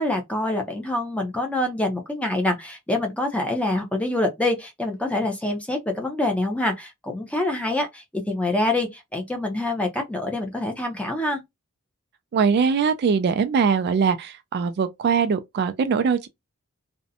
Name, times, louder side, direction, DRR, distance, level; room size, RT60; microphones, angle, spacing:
voice 1, 0.0-11.4, left 1 dB, 5° left, 0.5 m, -26 dB
voice 2, 12.3-16.3, right 6 dB, 50° right, 0.3 m, -22 dB
2.5 x 2.1 x 2.6 m
head